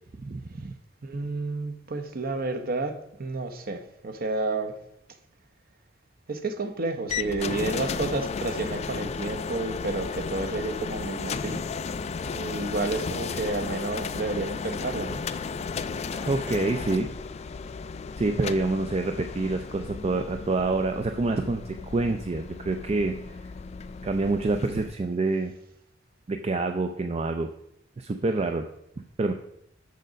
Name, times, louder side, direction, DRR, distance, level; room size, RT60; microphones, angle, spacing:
voice 1, 0.2-0.7 16.2-17.1 18.2-23.5 24.0-25.5 26.3-27.5 28.0-28.7 29.2-29.3, right 3 dB, 30° right, 0.4 m, -27 dB
voice 2, 1.0-4.8 6.3-11.7 12.2-15.2, right 3 dB, 50° right, 0.8 m, -31 dB
sound 1, 7.1-25.0, left 5 dB, 35° left, 0.3 m, -34 dB
sound 2, 16.1-18.2, equal, 80° right, 3.6 m, -51 dB
6.6 x 6.4 x 5.1 m
head